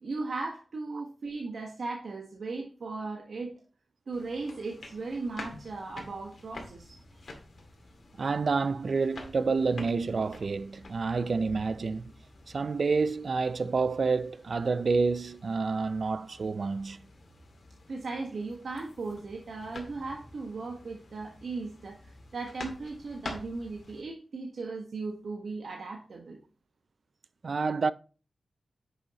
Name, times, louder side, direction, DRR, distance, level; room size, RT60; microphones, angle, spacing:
voice 1, 0.0-3.5 4.1-7.0 17.9-26.4, right 3 dB, 70° right, 1.4 m, -37 dB
sound 1, 4.1-24.0, left 2 dB, 55° left, 2.1 m, -48 dB
voice 2, 8.2-12.1 12.5-17.0 27.4-27.9, right 4 dB, 55° right, 0.4 m, -28 dB
10.5 x 7.0 x 3.0 m
wide cardioid pair, 145°, 0 cm